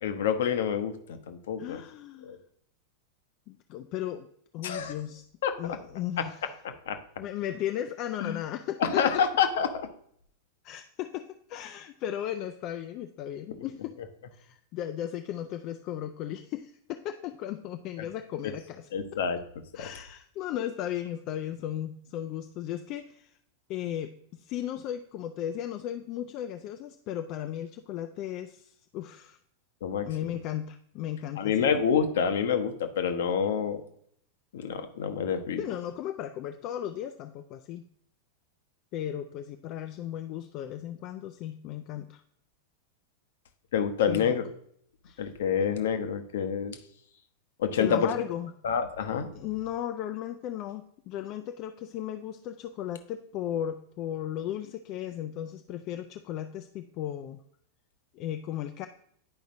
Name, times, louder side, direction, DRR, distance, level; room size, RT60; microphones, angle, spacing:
voice 1, 0.0-1.8 2.3-2.4 4.6-4.9 5.4-5.5 6.2-6.3 6.6-7.0 8.2-8.4 8.8-9.9 13.5-13.6 18.9-19.4 29.8-30.1 31.4-33.8 34.5-35.6 43.7-44.4 45.2-46.8 47.6-48.1 48.6-49.3, left 7 dB, 60° left, 8 dB, 0.8 m, -27 dB
voice 2, 1.6-2.4 3.5-4.3 4.5-5.2 5.6-6.5 7.2-9.2 10.6-14.0 14.3-18.9 19.7-23.3 23.7-29.4 30.0-31.7 35.6-37.8 38.9-42.2 44.1-44.4 45.0-45.3 47.8-48.5 49.3-57.4 58.1-58.9, left 11 dB, 40° left, 7 dB, 0.4 m, -36 dB
10.5 x 5.0 x 2.6 m, 0.65 s
figure-of-eight pair, 90°, 0 cm